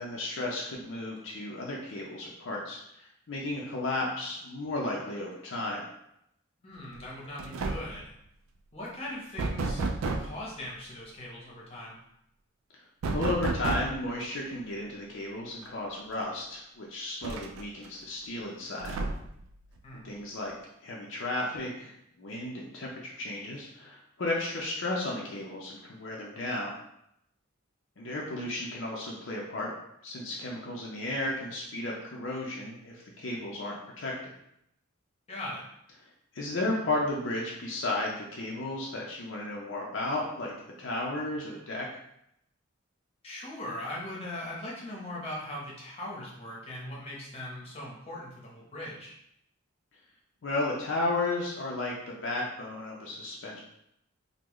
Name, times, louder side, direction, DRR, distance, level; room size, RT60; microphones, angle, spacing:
voice 1, 0.0-5.8 12.8-12.9 13.1-19.0 19.9-20.5 20.8-26.8 28.0-29.7 30.0-34.1 36.0-41.9 50.4-53.6, left 2 dB, 60° left, -3 dB, 0.5 m, -34 dB
voice 2, 6.6-8.1 8.7-12.0 19.8-20.0 35.3-35.6 43.2-49.1, left 1 dB, 30° left, -4 dB, 0.8 m, -40 dB
sound 1, 6.9-7.1 7.4-8.0 9.4-10.4 13.0-14.1 15.6-15.7 16.1-16.2 17.2-17.9 18.8-19.4, right 3 dB, 75° right, 0.3 m, -31 dB
3.7 x 2.1 x 3.0 m, 0.77 s
head